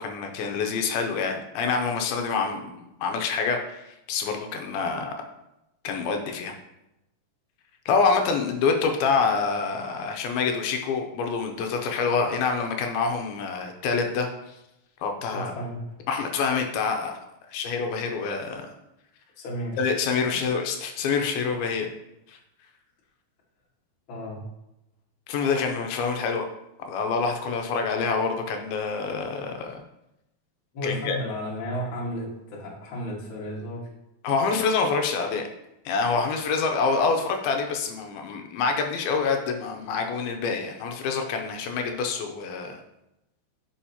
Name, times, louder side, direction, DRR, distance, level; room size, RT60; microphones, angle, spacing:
voice 1, 0.0-5.1 5.8-6.5 7.9-14.3 15.0-15.5 16.1-17.2 17.5-18.7 19.8-21.9 22.3-22.4 25.3-26.5 26.9-29.8 30.8-31.2 34.2-35.5 35.9-42.8, left 5 dB, 85° left, 4 dB, 2.5 m, -26 dB
voice 2, 15.3-15.8 19.4-19.8 24.1-24.4 30.7-33.9, equal, 45° left, -4 dB, 1.8 m, -33 dB
10.0 x 5.4 x 2.9 m, 0.88 s
omnidirectional pair, 4.4 m